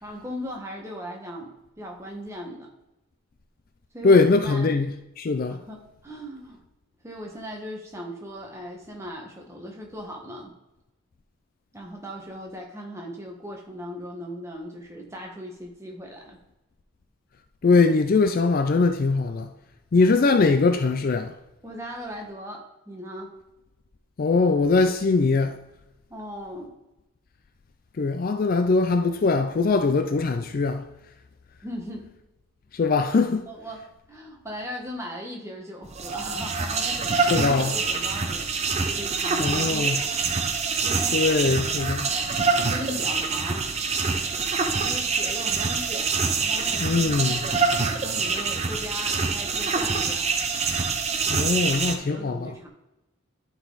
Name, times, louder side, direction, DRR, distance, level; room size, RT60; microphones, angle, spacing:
voice 1, 0.0-2.7 3.9-4.7 5.5-6.6 7.0-10.5 11.7-16.4 21.6-23.3 26.1-26.8 31.6-32.1 33.5-33.8 34.1-38.5 38.9-40.1 40.8-41.2 42.3-43.7 44.8-46.1 46.4-50.3 51.3-52.7, equal, 15° right, 1.1 m, -38 dB
voice 2, 4.0-5.6 17.6-19.5 19.9-21.3 24.2-25.6 28.0-30.9 32.7-33.5 37.2-37.8 39.4-40.0 41.1-42.1 46.8-47.4 51.3-52.6, left 3 dB, 40° left, 0.3 m, -21 dB
sound 1, 35.8-52.0, right 4 dB, 30° right, 0.6 m, -25 dB
11.5 x 4.0 x 3.9 m
head